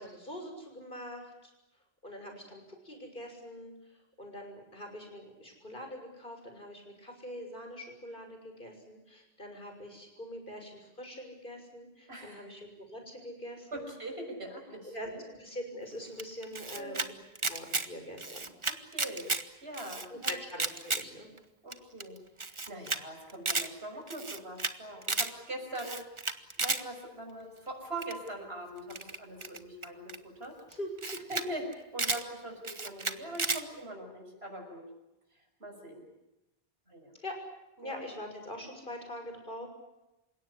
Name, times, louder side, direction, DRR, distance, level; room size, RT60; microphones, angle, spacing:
voice 1, 0.0-1.5 2.0-13.9 14.9-15.1 15.4-17.1 17.4-18.5 20.1-21.3 30.8-31.3 37.2-37.4 37.8-39.7, equal, 55° left, 4 dB, 6.8 m, -44 dB
voice 2, 12.1-12.5 13.7-15.2 16.7-17.1 18.7-19.3 19.6-20.3 21.6-22.2 22.5-26.0 26.6-30.0 30.4-30.5 31.3-34.8 35.3-36.0 36.9-37.1 37.8-38.0, right 1 dB, 80° right, 3 dB, 6.3 m, -42 dB
Camera, 16.2-17.1 17.4-17.9 18.2-19.4 19.7-21.0 21.4-21.5 21.7-21.8 22.0-22.1 22.4-23.0 23.3-23.7 24.1-24.7 25.0-25.3 25.8-26.8 28.0-28.3 28.9-30.2 30.7-30.8 31.0-31.5 31.7-32.2 32.6-33.6, right 3 dB, 30° right, 1.2 m, -33 dB
28.5 x 17.5 x 9.9 m, 0.96 s
omnidirectional pair, 1.0 m